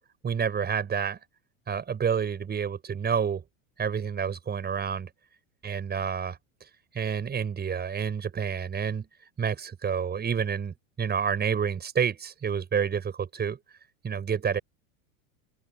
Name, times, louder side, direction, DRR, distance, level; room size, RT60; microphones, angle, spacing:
voice 1, 0.2-1.2 1.7-3.4 3.8-5.1 5.6-6.4 6.9-9.1 9.4-13.6 14.0-14.6, right 7 dB, 25° right, 5.8 m, -29 dB
open air
supercardioid pair, 120°, 41 cm